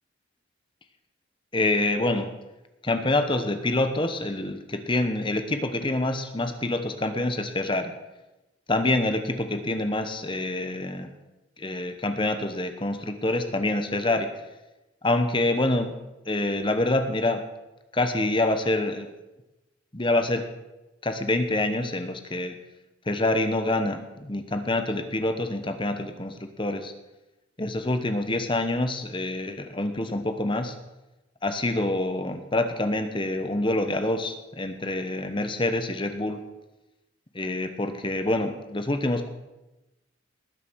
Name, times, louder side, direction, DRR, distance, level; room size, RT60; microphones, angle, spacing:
voice 1, 1.5-2.3 2.8-7.9 8.7-11.1 11.6-14.3 15.0-15.9 16.3-17.4 17.9-19.1 19.9-20.4 21.0-22.5 23.1-26.9 27.6-30.7 31.4-36.4 37.3-39.3, left 2 dB, 25° left, 8 dB, 1.0 m, -26 dB
19.5 x 6.9 x 6.2 m, 1.0 s
head